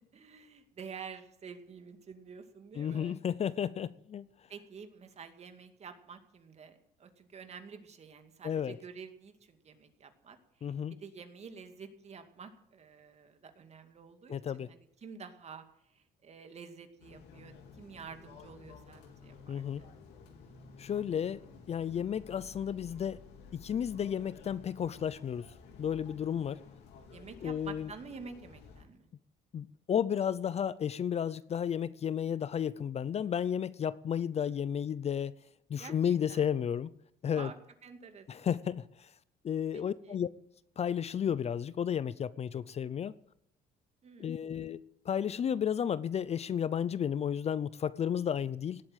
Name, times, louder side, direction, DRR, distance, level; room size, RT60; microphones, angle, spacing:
voice 1, 0.1-3.2 4.5-15.6 15.9-19.9 27.1-29.1 35.8-36.4 37.3-37.6 37.8-38.5 39.7-40.2 44.0-44.4, right 5 dB, 40° right, 2.4 m, -49 dB
voice 2, 2.8-4.3 8.4-8.8 10.6-11.0 14.3-14.7 19.5-19.8 20.8-21.4 21.7-23.2 23.5-25.4 25.8-26.6 27.4-27.9 29.5-35.3 35.7-36.9 37.2-37.5 38.3-38.8 39.4-40.3 40.8-43.1 44.2-44.8 45.1-48.8, left 8 dB, 40° left, 0.6 m, -32 dB
sound 1, 17.0-28.8, left 5 dB, 90° left, 3.4 m, -53 dB
18.0 x 8.1 x 9.1 m
cardioid pair, 110°, 17 cm